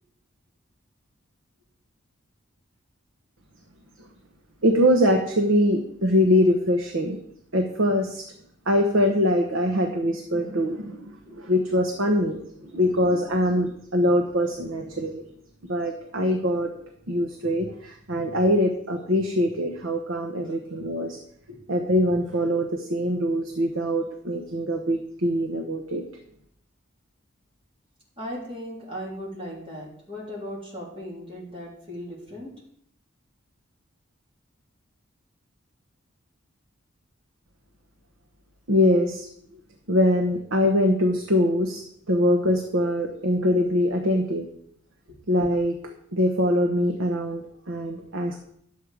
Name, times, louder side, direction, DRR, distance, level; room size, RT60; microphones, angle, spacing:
voice 1, 4.6-7.2 7.5-8.3 8.7-15.2 15.7-16.7 17.1-21.2 21.7-26.0 38.7-39.3 39.9-44.5 45.3-45.8 46.1-48.4, equal, 70° right, 4 dB, 1.0 m, -23 dB
voice 2, 28.2-32.5 45.1-45.2, equal, 25° right, -4 dB, 3.2 m, -37 dB
10.0 x 7.6 x 4.9 m, 0.69 s
head